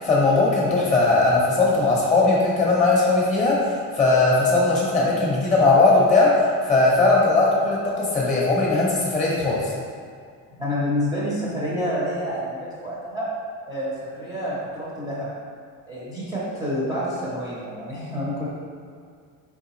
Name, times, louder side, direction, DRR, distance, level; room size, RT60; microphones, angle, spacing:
voice 1, 0.0-3.6 3.9-6.3 6.7-9.6, left 3 dB, 20° left, -4 dB, 0.8 m, -19 dB
voice 2, 10.6-13.3 13.7-15.3 15.9-18.5, equal, 10° right, -9 dB, 0.5 m, -28 dB
4.6 x 3.5 x 3.0 m, 2.1 s
cardioid pair, 175°, 37 cm